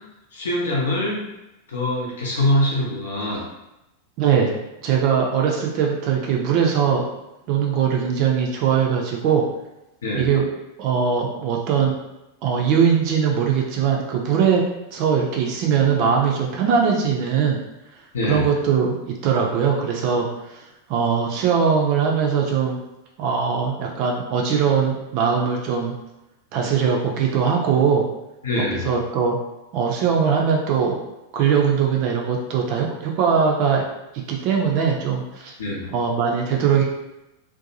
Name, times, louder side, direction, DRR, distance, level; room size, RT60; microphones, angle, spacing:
voice 1, 0.3-1.3 1.7-3.4 10.0-10.3 18.1-18.4 28.4-28.9 35.6-35.9, left 1 dB, 65° left, -3 dB, 0.7 m, -23 dB
voice 2, 4.2-4.5 4.8-7.1 7.5-9.4 10.1-10.5 10.8-11.9 12.4-14.6 14.9-17.6 18.3-22.8 23.2-25.9 26.5-28.1 28.7-29.4 29.7-31.0 31.3-33.8 34.3-35.5 35.9-36.8, right 6 dB, 45° right, 0 dB, 0.4 m, -21 dB
2.6 x 2.2 x 2.7 m, 0.92 s
figure-of-eight pair, 90°, 0 cm